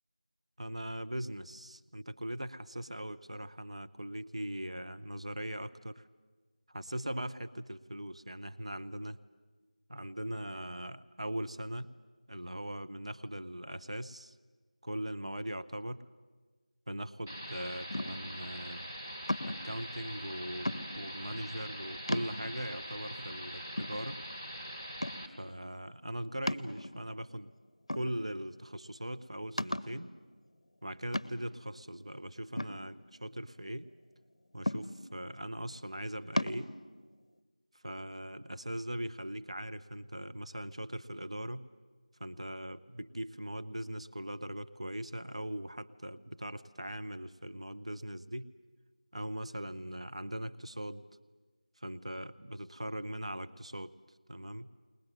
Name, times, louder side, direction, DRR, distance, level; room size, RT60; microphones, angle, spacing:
voice 1, 0.6-6.1 6.7-9.2 9.9-11.9 12.3-14.4 14.8-16.0 16.9-18.9 19.5-24.2 25.4-27.5 27.9-30.1 30.8-33.9 34.5-36.7 37.8-41.7 42.2-48.5 49.1-51.0 51.8-53.9 54.3-54.7, right 1 dB, 50° right, 11 dB, 0.7 m, -40 dB
Noise Sound, 17.3-25.3, equal, 20° right, 1.3 m, -43 dB
sound 1, 17.9-18.4 19.3-19.7 20.6-21.2 21.7-21.8 22.1-22.7 23.3-23.4 23.8-24.5 25.0-25.4 26.5-27.2 27.9-28.5 28.9-29.0 29.6-30.0 31.1-31.6 32.6-33.5 34.7-35.2 36.4-36.6, left 1 dB, 45° left, 0.7 m, -36 dB
21.0 x 20.0 x 9.3 m, 1.4 s
figure-of-eight pair, 175°, 4 cm